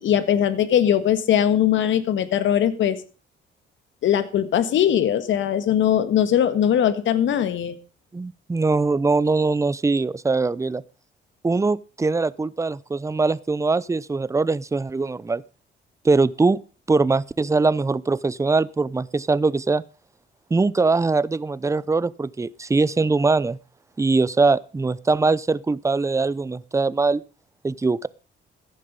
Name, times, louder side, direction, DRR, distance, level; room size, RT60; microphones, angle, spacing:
voice 1, 0.0-3.0 4.0-7.8, left 10 dB, 75° left, 1.7 m, -20 dB
voice 2, 8.1-10.8 11.4-15.4 16.0-16.6 16.9-19.8 20.5-23.6 24.0-27.2 27.6-28.1, right 3 dB, 15° right, 0.6 m, -22 dB
14.5 x 10.5 x 5.2 m
cardioid pair, 90°, 20 cm